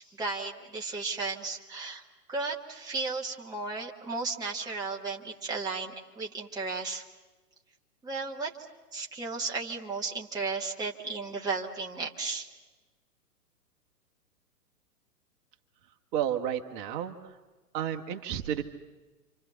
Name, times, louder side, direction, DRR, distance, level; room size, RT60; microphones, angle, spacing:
voice 1, 0.0-2.0 2.3-7.0 8.0-8.5 8.9-12.5, right 4 dB, 10° right, -1 dB, 1.3 m, -34 dB
voice 2, 16.1-17.4 17.7-18.6, right 10 dB, 30° right, 4 dB, 1.5 m, -31 dB
29.0 x 26.0 x 7.0 m, 1.2 s
figure-of-eight pair, 115°, 47 cm